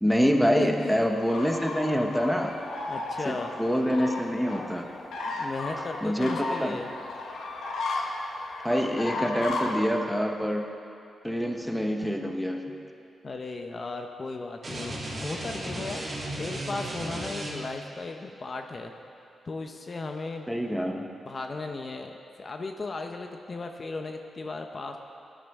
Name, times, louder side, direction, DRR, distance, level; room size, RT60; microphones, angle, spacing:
voice 1, 0.0-2.6 3.2-4.9 6.0-6.8 8.6-10.6 11.2-12.6 20.5-21.0, equal, ahead, 3 dB, 0.9 m, -26 dB
voice 2, 0.6-0.9 2.4-2.5 2.9-3.5 5.3-6.9 13.2-18.9 19.5-20.5 21.3-22.1 22.4-25.0, left 3 dB, 35° left, 4 dB, 0.7 m, -36 dB
sound 1, 0.8-9.8, left 2 dB, 90° left, 1.4 m, -35 dB
sound 2, 14.6-17.8, right 1 dB, 40° right, 2.6 m, -35 dB
17.5 x 11.0 x 3.6 m, 2.7 s
wide cardioid pair, 125°, 0 cm